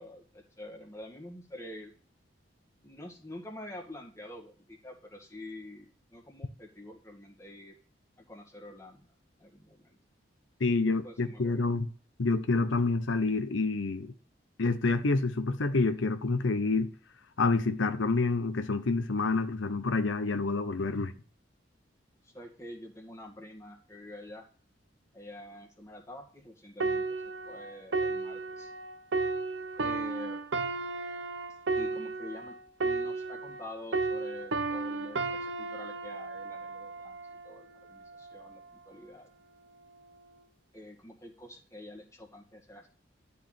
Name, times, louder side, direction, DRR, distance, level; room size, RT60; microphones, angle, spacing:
voice 1, 0.0-1.9 2.8-7.7 8.2-10.0 10.8-11.7 22.2-24.5 25.1-27.0 27.4-28.7 29.8-30.4 31.7-32.6 32.8-37.2 37.4-39.3 40.7-42.9, left 1 dB, 15° left, 2.0 m, -47 dB
voice 2, 10.6-11.9 12.2-14.1 14.6-16.9 17.4-21.1, left 3 dB, 85° left, 0.8 m, -28 dB
sound 1, 26.8-33.7 33.9-37.5 38.2-38.4, right 3 dB, 75° right, 0.8 m, -33 dB
12.0 x 4.8 x 7.5 m
head